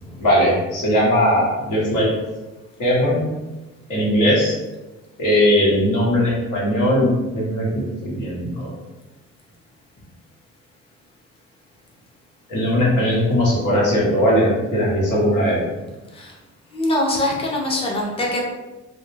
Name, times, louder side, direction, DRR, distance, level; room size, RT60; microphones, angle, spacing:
voice 1, 0.2-2.1 2.8-3.2 3.9-4.6 5.2-8.7 12.5-15.6, equal, 85° left, -5 dB, 1.1 m, -19 dB
voice 2, 16.7-18.5, left 1 dB, 20° left, -2 dB, 0.5 m, -23 dB
2.1 x 2.1 x 3.2 m, 1.1 s
cardioid pair, 90°, 30 cm